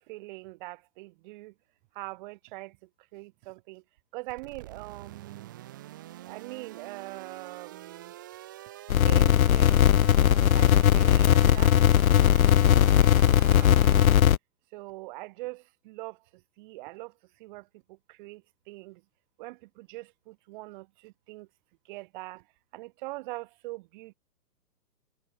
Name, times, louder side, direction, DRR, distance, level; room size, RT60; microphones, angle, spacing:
voice 1, 0.0-1.5 1.9-3.8 4.1-5.5 6.2-8.1 9.0-9.9 10.3-12.0 12.4-14.3 14.7-19.0 19.4-21.5 21.8-22.5 22.7-24.1, right 22 dB, 30° right, 3.9 m, -43 dB
sound 1, 4.3-14.2, right 14 dB, 15° right, 0.7 m, -46 dB
sound 2, 8.9-14.4, left 10 dB, 55° left, 1.0 m, -19 dB
hypercardioid pair, 160°, 50 cm